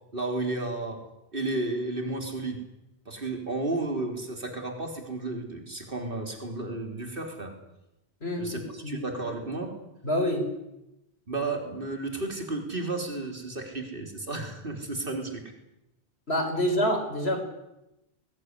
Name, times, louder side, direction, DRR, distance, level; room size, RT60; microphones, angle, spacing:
voice 1, 0.1-1.0 1.3-2.6 3.1-7.5 8.4-9.7 11.3-15.4, right 2 dB, 60° right, 4 dB, 4.0 m, -32 dB
voice 2, 8.2-9.0 10.0-10.5 16.3-17.4, equal, 80° left, 6 dB, 4.9 m, -27 dB
21.0 x 19.0 x 9.8 m, 0.91 s
omnidirectional pair, 1.1 m